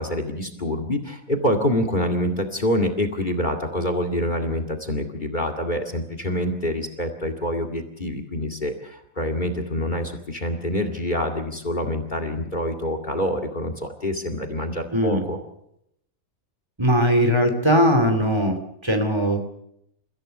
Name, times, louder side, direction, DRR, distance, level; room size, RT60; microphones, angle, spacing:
voice 1, 0.0-15.4, left 1 dB, 35° left, 7 dB, 2.4 m, -26 dB
voice 2, 14.9-15.2 16.8-19.4, equal, 20° right, 6 dB, 2.8 m, -20 dB
30.0 x 15.5 x 6.7 m, 0.78 s
omnidirectional pair, 1.4 m